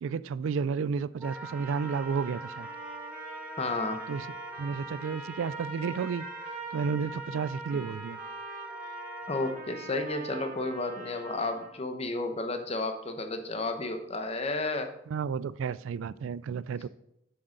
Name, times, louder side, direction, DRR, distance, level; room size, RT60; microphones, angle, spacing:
voice 1, 0.0-2.7 4.1-4.3 4.6-6.2 6.7-8.2 15.1-16.9, right 6 dB, 80° right, 0.3 m, -32 dB
Wind instrument woodwind instrument, 1.2-9.6, right 1 dB, 5° right, 0.4 m, -43 dB
Trumpet, 1.3-11.8, right 3 dB, 40° right, 1.4 m, -45 dB
voice 2, 3.6-4.0 9.3-14.9, left 2 dB, 30° left, 0.9 m, -32 dB
7.7 x 6.4 x 5.1 m
head